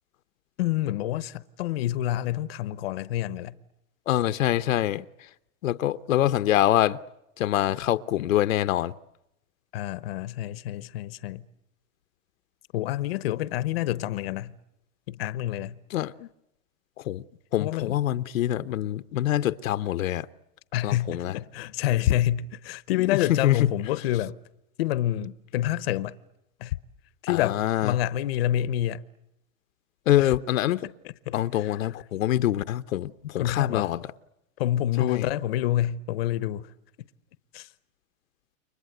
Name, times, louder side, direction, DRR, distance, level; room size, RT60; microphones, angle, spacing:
voice 1, 0.6-3.5 9.7-11.4 12.7-14.5 15.1-15.7 17.6-18.0 20.7-24.3 24.8-26.1 26.6-26.8 27.2-29.0 30.2-30.3 31.0-31.8 33.4-33.9 34.6-36.7 37.5-37.7, left 13 dB, 50° left, 1.0 m, -27 dB
voice 2, 4.1-5.0 5.6-7.0 7.4-8.9 15.9-16.3 17.1-17.2 17.5-20.3 20.8-21.3 23.0-23.6 27.3-27.9 30.1-30.8 31.3-34.0 35.1-35.3, left 13 dB, 80° left, 1.0 m, -25 dB
30.0 x 24.5 x 8.0 m
supercardioid pair, 175°, 40 cm